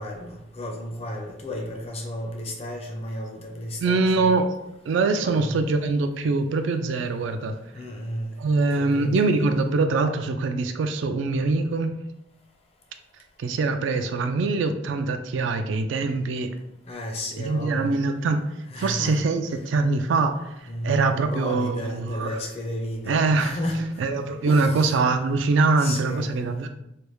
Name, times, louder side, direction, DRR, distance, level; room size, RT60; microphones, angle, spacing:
voice 1, 0.0-4.3 5.2-5.6 7.7-8.4 8.8-9.1 16.9-18.0 18.7-19.2 20.7-23.9 24.4-25.0 25.5-26.4, equal, 30° left, 1 dB, 0.5 m, -33 dB
voice 2, 3.8-4.5 4.9-7.6 8.4-11.9 13.4-16.5 17.4-18.4 18.8-20.5 20.8-22.4 23.1-23.6 24.0-26.7, right 3 dB, 70° right, 8 dB, 0.3 m, -23 dB
3.3 x 2.2 x 3.1 m, 0.83 s
head